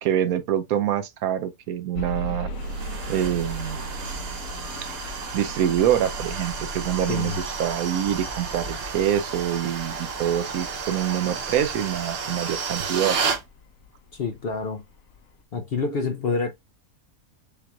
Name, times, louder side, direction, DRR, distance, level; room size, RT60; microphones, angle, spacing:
voice 1, 0.0-2.5 3.1-3.8 5.3-13.2, right 10 dB, 80° right, 1.1 m, -25 dB
sound 1, 2.0-13.9 14.6-14.7 15.2-15.3, equal, 75° left, 1.2 m, -37 dB
sound 2, 2.6-13.4, right 5 dB, 50° right, 0.9 m, -32 dB
voice 2, 7.1-7.4 14.1-14.8 15.5-16.5, left 4 dB, 55° left, 0.7 m, -27 dB
6.8 x 3.0 x 2.4 m
omnidirectional pair, 1.5 m